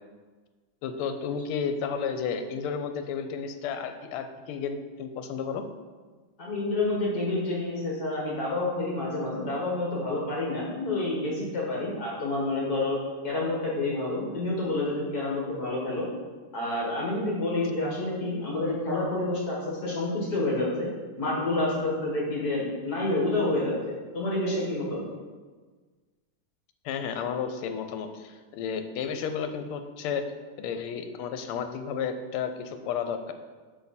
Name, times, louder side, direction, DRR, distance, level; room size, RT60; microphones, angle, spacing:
voice 1, 0.8-5.6 26.8-30.3 30.6-33.3, left 6 dB, 85° left, 8 dB, 1.5 m, -32 dB
voice 2, 6.4-13.0 13.2-16.1 16.5-20.9 21.2-25.1, left 2 dB, 50° left, -4 dB, 2.0 m, -28 dB
6.0 x 5.4 x 4.2 m, 1.4 s
omnidirectional pair, 2.4 m